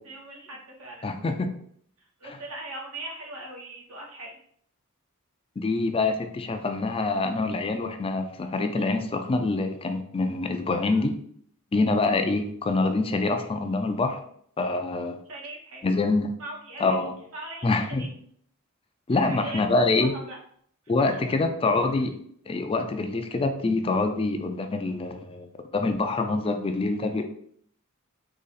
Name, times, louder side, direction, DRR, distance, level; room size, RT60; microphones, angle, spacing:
voice 1, 0.0-1.0 2.2-4.3 15.3-15.8 16.4-17.0 17.3-17.7 18.0-18.1 19.1-20.4 21.1-21.4, right 2 dB, 75° right, -1 dB, 1.4 m, -40 dB
voice 2, 1.0-1.5 2.2-2.4 5.6-11.1 11.7-14.2 14.6-15.2 15.8-16.3 16.8-17.1 17.6-18.1 19.1-20.1 20.9-22.1 22.5-27.2, left 3 dB, 25° left, 6 dB, 0.4 m, -25 dB
3.8 x 3.0 x 4.0 m, 0.64 s
head